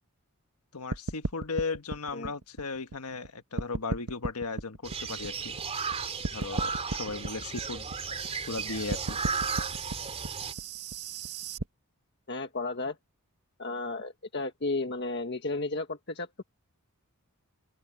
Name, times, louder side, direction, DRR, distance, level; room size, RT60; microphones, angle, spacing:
voice 1, 0.7-5.6 6.3-7.9 8.5-9.2, left 4 dB, 85° left, 1.5 m, -36 dB
sound 1, 0.9-3.3 3.6-5.9 6.2-11.6, right 3 dB, 90° right, 1.4 m, -35 dB
sound 2, 4.8-10.5, right 5 dB, 30° right, 3.3 m, -35 dB
voice 2, 12.3-13.0 13.6-16.4, left 3 dB, 50° left, 1.6 m, -33 dB
open air
head